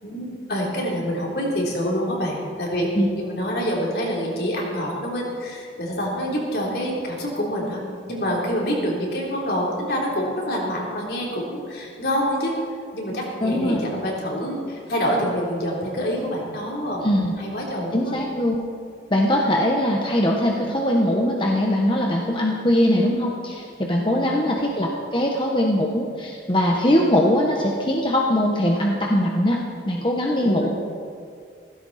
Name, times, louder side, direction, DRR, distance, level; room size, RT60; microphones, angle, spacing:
voice 1, 0.0-7.8 8.1-12.6 12.9-17.0 17.4-18.2 24.0-24.3 30.4-30.7, equal, 60° left, -3 dB, 3.7 m, -26 dB
voice 2, 13.4-13.8 17.0-17.3 17.9-18.6 19.1-29.6 29.8-30.7, left 1 dB, 25° left, -1 dB, 1.2 m, -21 dB
17.0 x 15.5 x 4.3 m, 2.2 s
head